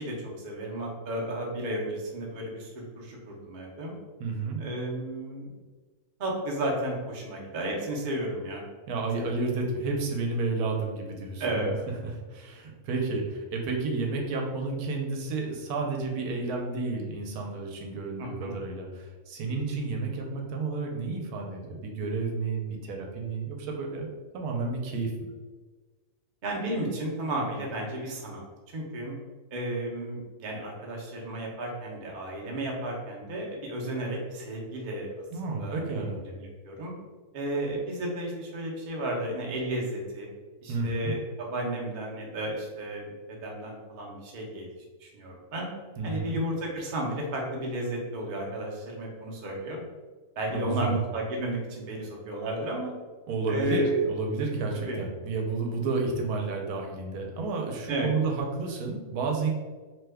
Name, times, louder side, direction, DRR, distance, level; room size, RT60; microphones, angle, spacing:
voice 1, 0.0-3.9 4.6-5.5 6.2-8.6 9.2-9.3 11.4-11.7 18.2-18.6 26.4-29.1 29.5-35.1 35.4-36.0 36.3-36.9 37.3-40.3 40.6-44.7 45.0-45.7 46.0-49.8 50.4-52.9 53.5-54.0 54.8-55.0 57.9-58.1, right 1 dB, 50° right, -2 dB, 0.6 m, -33 dB
voice 2, 4.2-4.6 8.9-11.7 12.0-24.1 24.3-25.3 35.3-36.2 40.7-41.1 46.0-46.4 50.5-51.0 53.3-59.5, right 3 dB, 85° right, 1 dB, 1.1 m, -31 dB
2.9 x 2.2 x 3.3 m, 1.3 s
omnidirectional pair, 1.6 m